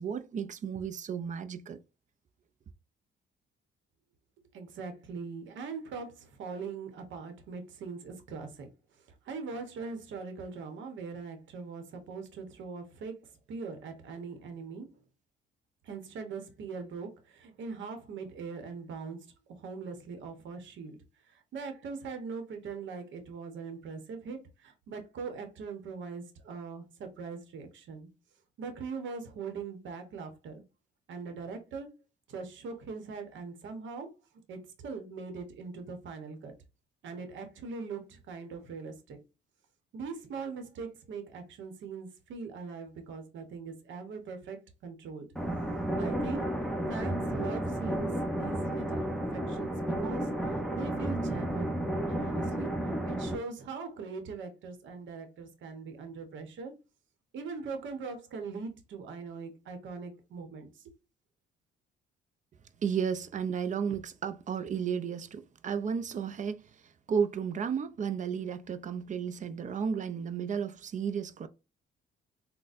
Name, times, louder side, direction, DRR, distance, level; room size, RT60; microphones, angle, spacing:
voice 1, 0.0-1.8 62.8-66.6 67.1-71.5, right 7 dB, 40° right, 0.4 m, -33 dB
voice 2, 4.5-14.9 15.8-28.1 28.6-30.6 31.1-31.9 32.3-34.1 34.5-36.5 37.0-39.2 39.9-45.3 46.0-51.8 52.1-52.7 53.0-56.7 57.3-60.9, right 4 dB, 70° right, 0.9 m, -41 dB
sound 1, 45.4-53.4, right 1 dB, ahead, 0.7 m, -32 dB
4.0 x 2.1 x 2.4 m
cardioid pair, 90°, 20 cm